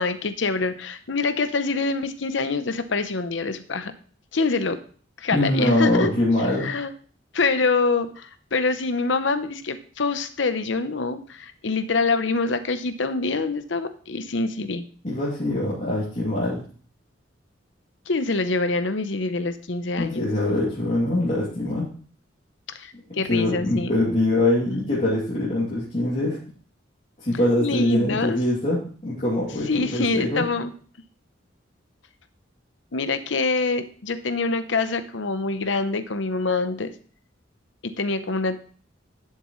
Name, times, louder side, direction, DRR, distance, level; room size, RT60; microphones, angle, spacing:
voice 1, 0.0-3.9 4.3-4.8 5.2-6.1 6.6-6.9 7.3-14.8 18.1-20.3 22.8-23.9 24.7-24.8 27.6-28.4 29.7-30.7 32.9-36.9 37.8-38.6, left 3 dB, 70° left, 10 dB, 0.8 m, -25 dB
voice 2, 5.3-6.7 15.0-16.6 20.0-21.9 23.3-26.4 27.2-30.4, left 1 dB, 40° left, -8 dB, 2.7 m, -23 dB
11.5 x 7.5 x 3.2 m, 0.43 s
head